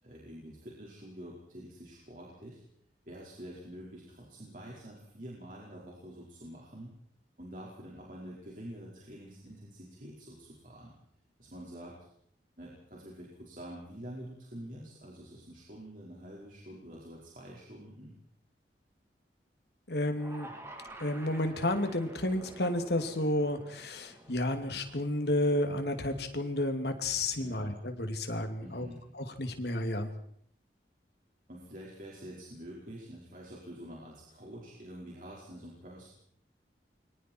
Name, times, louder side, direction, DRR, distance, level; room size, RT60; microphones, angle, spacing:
voice 1, 0.0-2.6 3.0-6.9 7.4-10.9 11.4-12.0 12.6-18.1 27.4-27.7 28.6-29.1 31.5-36.1, equal, 45° right, -4 dB, 5.0 m, -47 dB
voice 2, 19.9-20.5 21.0-28.9 29.2-30.1, left 1 dB, 75° left, 6 dB, 2.7 m, -31 dB
sound 1, 20.1-26.4, right 1 dB, 15° right, 3.4 m, -50 dB
29.0 x 24.0 x 4.6 m, 0.67 s
head